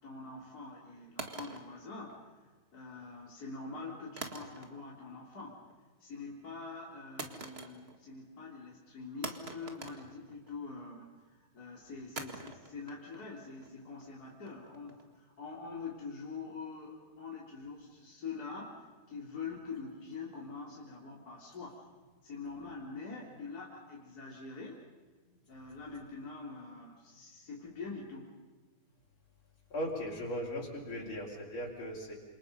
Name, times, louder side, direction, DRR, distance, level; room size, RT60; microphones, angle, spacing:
voice 1, 0.0-2.2 2.7-5.7 6.0-11.1 11.5-21.9 22.2-24.8 25.5-28.4, left 4 dB, 45° left, -4 dB, 4.0 m, -45 dB
sound 1, 1.2-2.6 4.2-5.0 5.3-5.8 7.2-8.1 8.4-8.5 9.2-10.8 12.2-15.2, right 3 dB, 30° right, 2.0 m, -46 dB
voice 2, 29.7-32.1, equal, 75° left, -3 dB, 5.3 m, -38 dB
28.0 x 27.5 x 5.5 m, 1.4 s
omnidirectional pair, 2.3 m